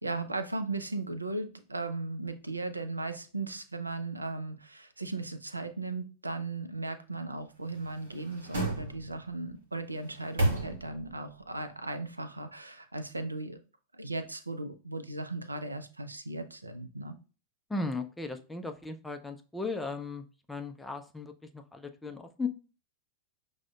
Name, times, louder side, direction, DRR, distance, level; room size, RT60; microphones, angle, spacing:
voice 1, 0.0-13.6 13.9-17.2, right 2 dB, 80° right, 9 dB, 0.3 m, -37 dB
sound 1, 7.6-9.4 9.9-11.2 11.6-11.7, right 2 dB, 65° right, 0.9 m, -33 dB
voice 2, 17.7-22.5, left 3 dB, 5° left, 5 dB, 0.4 m, -37 dB
6.0 x 2.0 x 2.3 m, 0.35 s
figure-of-eight pair, 90°, 0 cm